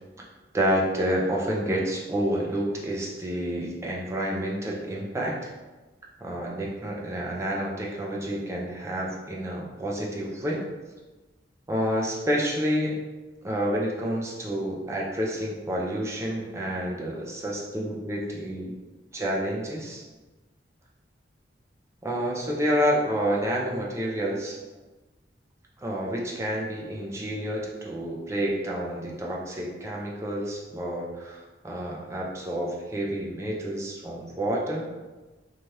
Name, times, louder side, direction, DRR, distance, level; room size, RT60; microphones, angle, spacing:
voice 1, 0.5-5.5 6.2-10.6 11.7-13.0 13.4-18.7 19.1-20.0 22.0-24.6 25.8-34.8, equal, 15° right, -3 dB, 0.4 m, -29 dB
3.1 x 2.3 x 2.7 m, 1.2 s
head